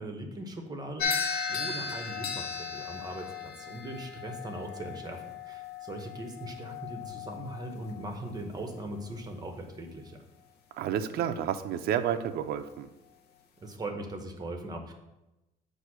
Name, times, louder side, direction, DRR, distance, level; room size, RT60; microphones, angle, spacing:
voice 1, 0.0-10.2 13.6-14.9, right 1 dB, 25° right, 4 dB, 1.0 m, -40 dB
sound 1, 1.0-9.4, left 5 dB, 70° left, 0.8 m, -37 dB
voice 2, 10.8-12.9, right 9 dB, 70° right, 8 dB, 0.5 m, -30 dB
7.8 x 2.7 x 6.0 m, 0.97 s
cardioid pair, 110°, 17 cm